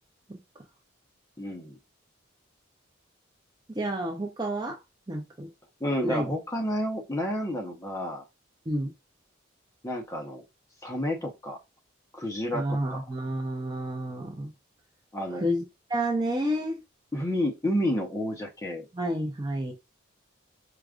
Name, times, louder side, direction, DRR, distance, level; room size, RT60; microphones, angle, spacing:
voice 1, 1.4-1.8 5.8-8.2 9.8-10.4 10.8-11.6 12.1-13.0 15.1-15.5 17.1-18.9, equal, 15° left, 0.7 m, -30 dB
voice 2, 3.7-4.8 5.1-5.5 6.0-6.3 8.7-8.9 12.5-14.5 15.4-15.6 15.9-16.8 18.9-19.7, right 1 dB, 20° right, 0.5 m, -30 dB
4.8 x 2.3 x 2.4 m
head